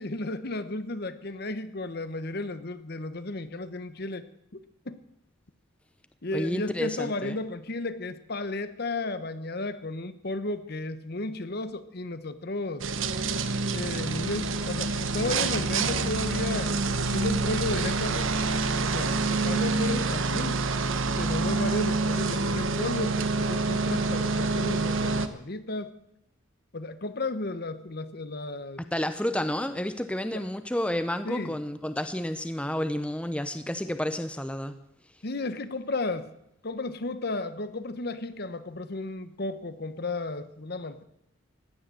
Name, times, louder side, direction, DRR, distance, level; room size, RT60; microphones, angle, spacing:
voice 1, 0.0-4.3 4.5-5.0 6.2-12.9 13.7-20.7 21.2-25.9 26.7-28.8 30.3-30.4 31.2-31.6 35.2-36.3 36.6-41.0, left 2 dB, 55° left, 12 dB, 1.0 m, -34 dB
voice 2, 6.3-7.4 28.9-34.8, left 1 dB, 5° left, 10 dB, 0.7 m, -30 dB
sound 1, 12.8-25.3, right 3 dB, 85° right, 1.1 m, -27 dB
16.5 x 11.0 x 7.7 m, 0.78 s
head